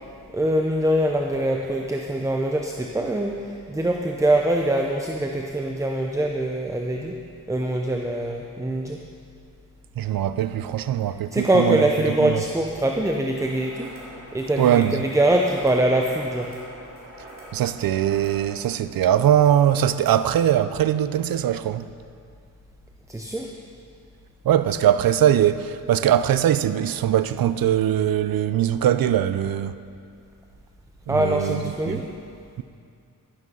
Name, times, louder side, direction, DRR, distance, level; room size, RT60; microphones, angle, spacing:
voice 1, 0.3-7.2 7.5-9.0 11.0-16.5 23.1-23.5 31.1-32.1, right 1 dB, 10° right, 0.6 m, -23 dB
voice 2, 10.0-11.8 12.2-12.4 14.6-14.9 17.5-21.9 24.4-29.8 31.1-31.6 31.9-32.0, right 10 dB, 80° right, 0.5 m, -21 dB
sound 1, 13.3-18.5, right 1 dB, 40° right, 3.8 m, -44 dB
12.0 x 11.0 x 5.5 m
wide cardioid pair, 130°, 34 cm